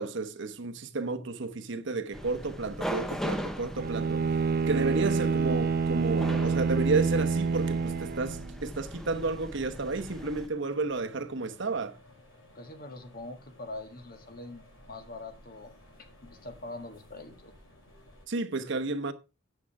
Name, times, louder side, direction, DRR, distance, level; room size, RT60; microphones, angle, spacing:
voice 1, 0.0-4.3 4.7-12.0 18.3-19.1, right 3 dB, 65° right, 1.0 m, -32 dB
sound 1, 2.1-10.5, equal, ahead, 0.8 m, -39 dB
Bowed string instrument, 3.8-8.6, right 5 dB, 45° right, 0.4 m, -27 dB
sound 2, 8.7-18.3, left 1 dB, 70° left, 5.9 m, -57 dB
voice 2, 12.5-15.7 16.0-17.5, left 2 dB, 45° left, 1.7 m, -43 dB
8.7 x 7.2 x 4.7 m
head